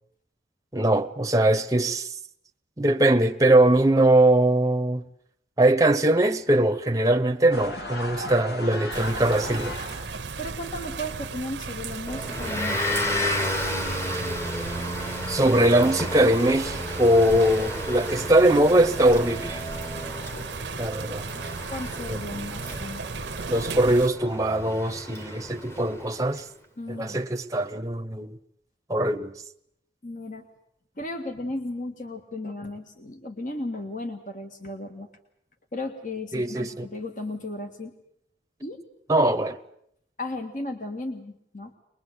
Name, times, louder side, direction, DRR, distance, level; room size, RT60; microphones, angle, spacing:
voice 1, 0.7-2.1 2.8-5.0 5.6-9.8 15.3-19.6 20.8-21.3 22.1-22.6 23.5-26.4 26.9-28.4 28.9-29.3 36.3-36.9 39.1-39.6, right 1 dB, 20° right, 0.9 m, -21 dB
sound 1, 7.5-10.3, left 1 dB, 65° left, 2.8 m, -35 dB
sound 2, 8.9-24.1, right 4 dB, 85° right, 0.9 m, -36 dB
voice 2, 10.4-12.9 21.7-23.0 26.8-27.2 30.0-30.4 31.0-35.1 35.7-37.9 38.6-38.8 40.2-41.7, left 1 dB, 45° left, 1.8 m, -35 dB
Motor vehicle (road) / Engine, 12.1-26.3, left 1 dB, 15° left, 1.5 m, -33 dB
22.0 x 21.5 x 8.2 m
head